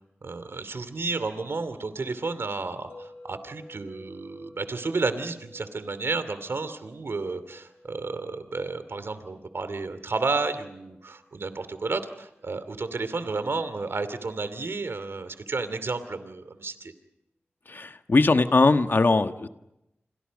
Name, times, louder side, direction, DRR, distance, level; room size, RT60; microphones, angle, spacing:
voice 1, 0.2-16.9, right 3 dB, 70° right, 12 dB, 2.7 m, -31 dB
sound 1, 2.9-13.0, left 1 dB, 80° left, 5.1 m, -53 dB
voice 2, 17.7-19.5, left 3 dB, 55° left, 8 dB, 1.6 m, -21 dB
29.5 x 27.0 x 5.3 m, 0.85 s
cardioid pair, 45°, 4 cm